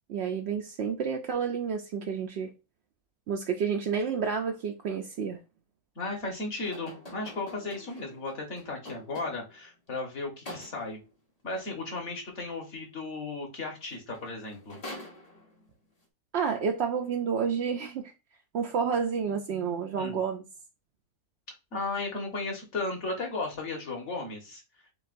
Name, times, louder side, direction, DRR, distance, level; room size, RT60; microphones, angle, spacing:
voice 1, 0.1-2.5 3.3-5.4 16.3-18.1 18.5-20.4, right 6 dB, 70° right, 0.6 m, -30 dB
voice 2, 5.9-11.0 11.4-14.8 20.0-20.1 21.7-24.6, left 3 dB, 50° left, 1.6 m, -35 dB
sound 1, 6.6-9.7 10.5-11.1 13.8-13.9 14.1-15.7, left 1 dB, 30° left, 0.8 m, -46 dB
7.1 x 2.4 x 2.5 m
omnidirectional pair, 1.6 m